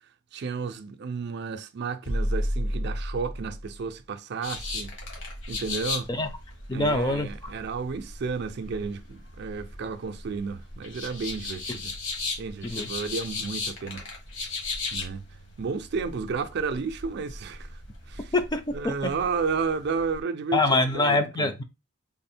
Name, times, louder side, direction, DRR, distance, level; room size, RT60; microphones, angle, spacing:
voice 1, 0.3-4.9 5.5-6.1 6.7-11.9 12.4-14.0 14.9-15.2 15.6-17.8 18.1-18.3 18.7-21.5, right 5 dB, 55° right, 0.4 m, -32 dB
sound 1, 2.0-3.9, equal, 85° left, 1.0 m, -29 dB
sound 2, 4.4-20.2, left 3 dB, 70° left, 1.3 m, -37 dB
voice 2, 6.7-7.5 12.6-12.9 18.3-18.9 20.5-21.6, left 2 dB, 20° left, 0.4 m, -25 dB
3.6 x 2.1 x 4.2 m
head